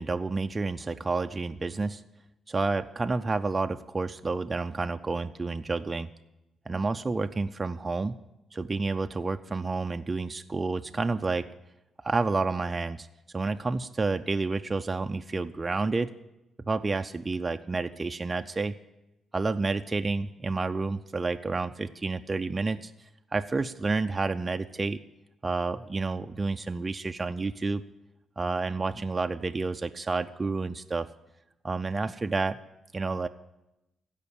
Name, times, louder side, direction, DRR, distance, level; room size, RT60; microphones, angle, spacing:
voice 1, 0.0-2.0 2.5-6.1 6.7-8.1 8.5-11.5 12.0-13.1 13.3-16.1 16.7-18.7 19.3-22.9 23.3-25.0 25.4-27.8 28.4-31.1 31.6-32.6 32.9-33.3, right 3 dB, 25° right, 7 dB, 0.4 m, -29 dB
15.5 x 5.3 x 8.4 m, 0.93 s
cardioid pair, 105°, 0 cm